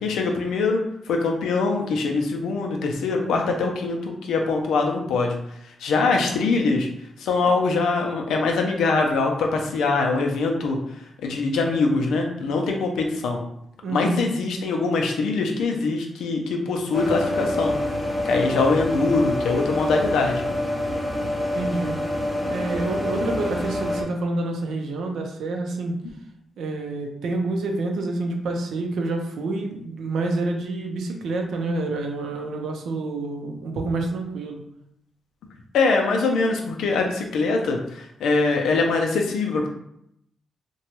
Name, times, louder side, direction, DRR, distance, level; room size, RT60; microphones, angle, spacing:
voice 1, 0.0-5.4 5.8-6.9 7.2-10.8 11.2-13.4 13.9-17.8 18.2-20.4 35.7-39.7, left 3 dB, 85° left, 2 dB, 0.5 m, -23 dB
voice 2, 13.8-14.3 21.5-21.9 22.5-26.0 26.6-34.6, right 2 dB, 85° right, 2 dB, 0.6 m, -28 dB
sound 1, 16.9-24.0, left 1 dB, 5° left, 0.7 m, -26 dB
2.9 x 2.3 x 2.9 m, 0.75 s
cardioid pair, 60°, 0 cm